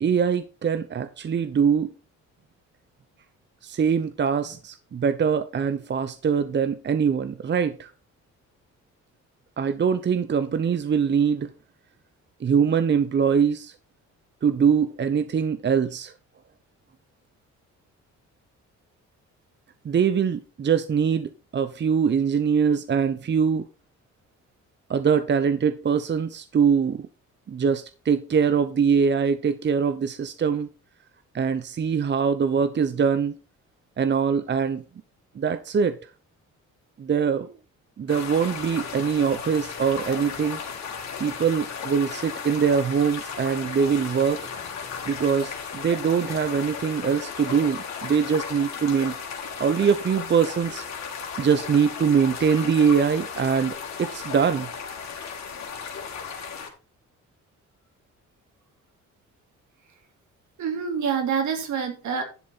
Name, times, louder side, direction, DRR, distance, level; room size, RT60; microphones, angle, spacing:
voice 1, 0.0-1.9 3.6-7.9 9.6-11.5 12.4-13.7 14.4-16.1 19.8-23.7 24.9-27.1 27.5-30.7 31.3-33.4 34.0-34.8 35.3-36.1 37.0-37.5 38.0-40.6 41.2-44.4 45.1-49.2 49.6-50.9 51.4-54.7, right 6 dB, 35° right, 0.8 m, -23 dB
sound 1, 38.1-56.7, left 6 dB, 65° left, 3.3 m, -35 dB
voice 2, 60.6-62.2, right 6 dB, 70° right, 3.3 m, -26 dB
11.0 x 7.5 x 4.2 m
cardioid pair, 90°, 30 cm